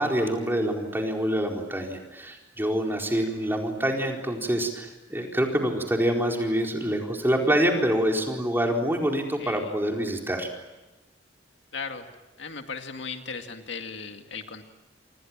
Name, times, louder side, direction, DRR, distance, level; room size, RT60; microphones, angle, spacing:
voice 1, 0.0-10.5, equal, 10° right, 1 dB, 4.4 m, -26 dB
voice 2, 9.4-9.8 11.7-12.1 12.4-14.6, left 5 dB, 70° left, 5 dB, 2.3 m, -37 dB
29.0 x 26.5 x 7.5 m, 1.0 s
head